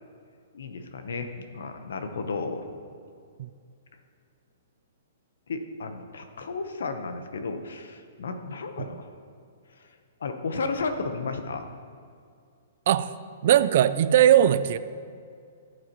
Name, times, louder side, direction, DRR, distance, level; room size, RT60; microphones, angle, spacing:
voice 1, 0.5-2.7 5.5-9.1 10.2-11.7, left 4 dB, 80° left, 7 dB, 1.0 m, -33 dB
voice 2, 13.4-14.8, right 11 dB, 45° right, 15 dB, 0.3 m, -19 dB
14.0 x 8.0 x 3.1 m, 2.3 s
hypercardioid pair, 170°, 0 cm